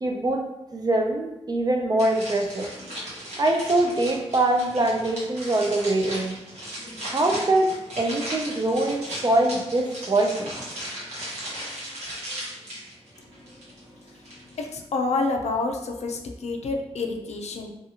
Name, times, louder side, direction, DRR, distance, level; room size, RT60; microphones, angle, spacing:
voice 1, 0.0-2.7 3.4-6.4 7.1-10.6, right 2 dB, 35° right, 2 dB, 0.4 m, -23 dB
sound 1, 2.0-14.6, equal, 90° right, 1.1 m, -37 dB
voice 2, 14.6-17.7, left 3 dB, 80° left, 3 dB, 0.4 m, -28 dB
2.8 x 2.4 x 2.7 m, 0.92 s
wide cardioid pair, 105°, 11 cm